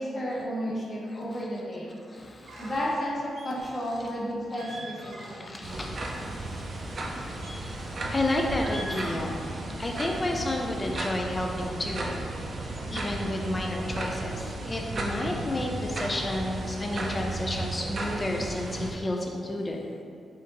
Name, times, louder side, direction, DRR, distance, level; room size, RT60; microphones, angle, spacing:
voice 1, 0.0-2.0 2.6-5.5, equal, 35° left, -5 dB, 1.0 m, -32 dB
voice 2, 2.2-2.7 5.0-6.0 6.5-6.6 7.2-12.2 12.9-19.9, left 1 dB, 20° left, 1 dB, 0.3 m, -31 dB
sound 1, 2.5-2.9 3.4-4.1 4.4-5.7 6.0-6.2 7.0-8.1 8.5-9.8, right 1 dB, 70° right, 1.0 m, -43 dB
sound 2, 5.6-18.9, right 2 dB, 40° right, 0.5 m, -34 dB
5.0 x 2.6 x 3.9 m, 2.3 s
wide cardioid pair, 155°, 0 cm